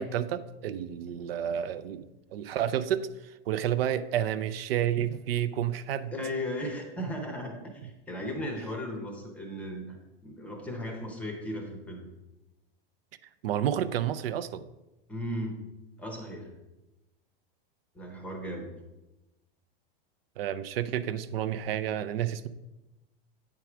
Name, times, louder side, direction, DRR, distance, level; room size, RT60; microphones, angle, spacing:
voice 1, 0.0-2.0 2.3-6.1 13.4-14.6 20.4-22.5, right 10 dB, 80° right, 13 dB, 0.6 m, -30 dB
voice 2, 6.1-10.0 10.2-12.0 15.1-15.6 16.0-16.5 17.9-18.7, equal, 5° left, 3 dB, 0.7 m, -36 dB
9.0 x 4.7 x 6.0 m, 1.0 s
supercardioid pair, 180°, 29 cm